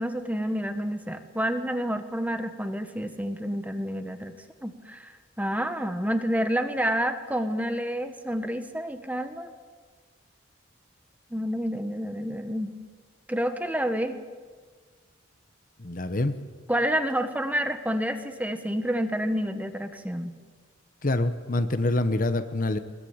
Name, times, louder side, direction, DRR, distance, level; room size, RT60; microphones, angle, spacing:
voice 1, 0.0-4.3 4.6-5.1 5.4-9.5 11.3-12.8 13.3-14.2 16.7-20.4, equal, 10° right, 8 dB, 1.3 m, -29 dB
voice 2, 15.8-16.3 21.0-22.8, left 2 dB, 40° left, 10 dB, 1.0 m, -26 dB
21.5 x 21.0 x 8.9 m, 1.5 s
head